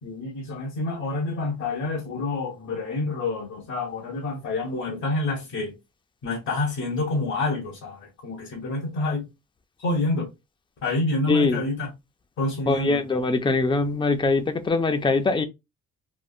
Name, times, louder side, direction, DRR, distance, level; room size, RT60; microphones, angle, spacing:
voice 1, 0.0-5.7 6.2-9.3 9.8-10.3 10.8-11.9 12.4-13.0, left 2 dB, 70° left, 1.3 m, -28 dB
voice 2, 11.3-11.6 12.7-15.5, left 3 dB, 15° left, 0.5 m, -22 dB
3.6 x 2.4 x 2.4 m
cardioid pair, 90°, 30 cm